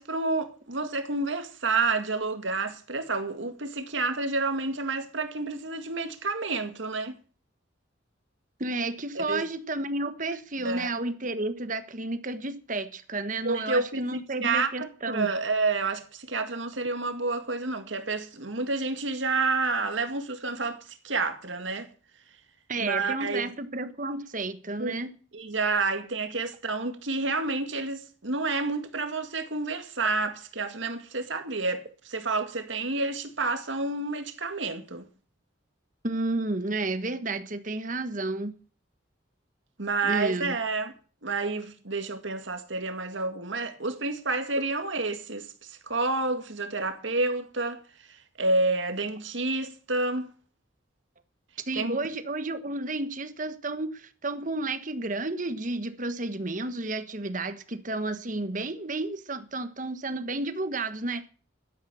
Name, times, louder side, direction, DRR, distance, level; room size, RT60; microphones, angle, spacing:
voice 1, 0.0-7.2 9.2-9.4 10.6-10.9 13.4-21.9 22.8-23.5 24.8-25.0 25.3-35.1 39.8-40.9 41.2-47.8 48.4-50.3 51.8-52.0, right 3 dB, 80° right, 2.1 m, -29 dB
voice 2, 8.6-15.3 22.7-25.1 36.0-38.6 40.0-40.6 51.7-61.3, right 2 dB, 40° right, 1.4 m, -31 dB
12.0 x 10.5 x 7.0 m
head